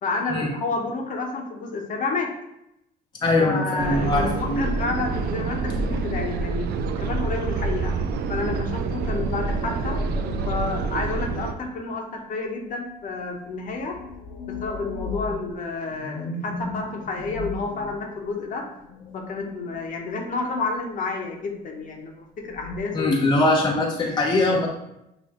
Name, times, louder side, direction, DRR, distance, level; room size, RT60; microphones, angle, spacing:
voice 1, 0.0-2.3 3.4-6.7 7.0-7.9 8.3-10.0 10.5-14.0 14.5-18.7 19.1-23.2, left 3 dB, 50° left, 2 dB, 0.9 m, -30 dB
voice 2, 3.2-4.6 22.9-24.7, left 2 dB, 25° left, -1 dB, 0.7 m, -21 dB
sound 1, 3.8-11.5, right 4 dB, 65° right, 0.5 m, -27 dB
sound 2, 3.9-7.0 7.8-11.6 13.2-20.2 22.4-22.8, left 3 dB, 80° left, 1.0 m, -38 dB
6.4 x 2.7 x 2.9 m, 0.84 s
cardioid pair, 110°, 17 cm